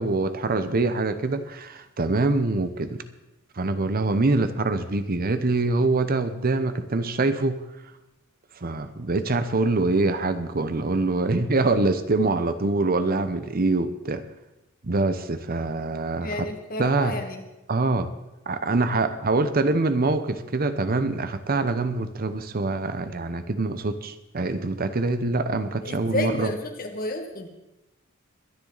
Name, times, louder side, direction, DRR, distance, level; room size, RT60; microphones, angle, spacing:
voice 1, 0.0-3.0 3.6-7.6 8.6-14.2 14.8-16.5 16.8-17.1 17.7-18.1 18.5-26.5, right 3 dB, 45° right, 11 dB, 0.8 m, -24 dB
voice 2, 16.2-17.4 25.8-27.5, left 1 dB, 45° left, 5 dB, 1.8 m, -30 dB
22.5 x 10.5 x 4.0 m, 0.95 s
head